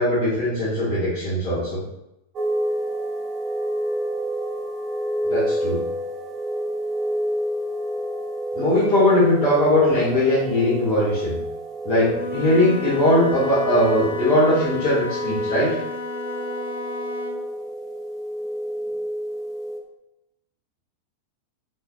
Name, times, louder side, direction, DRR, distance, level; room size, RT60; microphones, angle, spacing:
voice 1, 0.0-1.8 5.2-5.8 8.5-11.4 11.8-15.7, left 1 dB, 40° left, -9 dB, 1.6 m, -20 dB
sound 1, 2.4-19.8, equal, 30° right, 0.7 m, -29 dB
Wind instrument woodwind instrument, 12.1-17.5, left 3 dB, 65° left, 0.6 m, -33 dB
5.0 x 4.1 x 2.4 m, 0.86 s
figure-of-eight pair, 90°, 0 cm